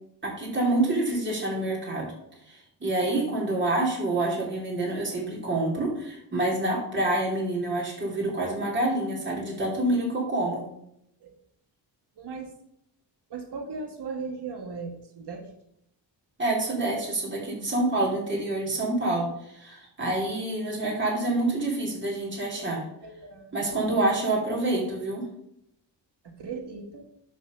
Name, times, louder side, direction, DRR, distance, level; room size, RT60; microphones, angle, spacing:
voice 1, 0.2-2.1 2.5-10.6 16.4-22.8 23.5-25.2, right 2 dB, 25° right, -4 dB, 3.3 m, -27 dB
voice 2, 12.2-12.5 13.3-15.5 20.3-20.4 22.5-22.7 23.0-24.0 26.2-27.1, right 4 dB, 65° right, 3 dB, 1.6 m, -38 dB
10.5 x 4.2 x 6.7 m, 0.77 s
wide cardioid pair, 120°, 44 cm